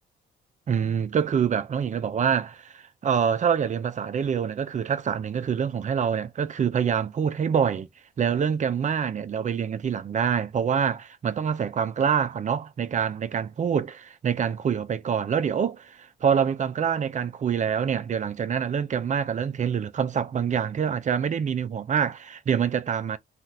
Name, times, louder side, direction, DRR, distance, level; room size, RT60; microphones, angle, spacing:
voice 1, 0.7-7.9 8.2-23.2, right 7 dB, 40° right, 0.5 m, -26 dB
2.7 x 2.5 x 3.3 m
cardioid pair, 90°, 20 cm